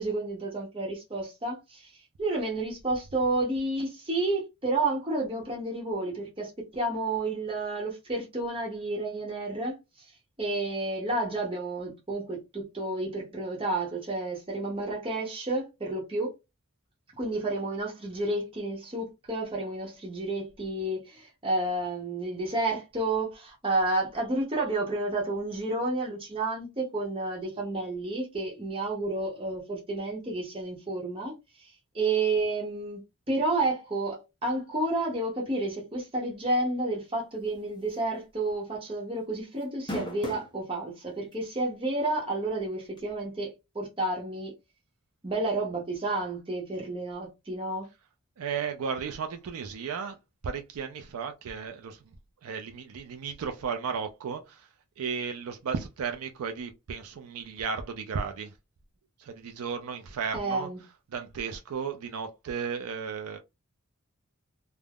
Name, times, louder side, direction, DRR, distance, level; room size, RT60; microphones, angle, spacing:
voice 1, 0.0-1.9 2.2-9.8 10.4-16.3 17.2-31.3 31.6-33.0 33.3-44.5 45.2-47.9 60.3-60.8, right 2 dB, 25° right, 0.7 m, -30 dB
sound 1, 37.9-38.2 38.5-38.6 39.6-40.5 41.3-41.4 43.0-43.1, left 1 dB, 20° left, 0.5 m, -35 dB
voice 2, 48.4-50.2 50.4-52.1 52.4-54.7 55.0-58.5 59.2-60.7 61.1-63.4, right 6 dB, 80° right, 0.4 m, -34 dB
3.4 x 2.0 x 2.3 m
head